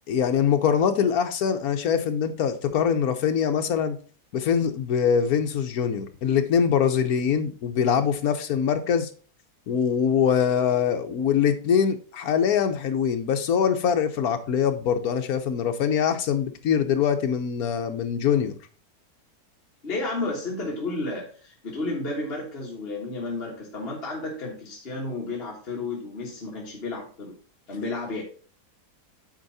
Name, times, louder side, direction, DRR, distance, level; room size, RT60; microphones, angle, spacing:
voice 1, 0.1-4.0 4.3-9.1 9.7-18.6, left 7 dB, 65° left, 1.3 m, -23 dB
voice 2, 19.8-27.4 27.7-28.2, left 2 dB, 40° left, 1.7 m, -32 dB
9.1 x 4.6 x 4.1 m
omnidirectional pair, 1.8 m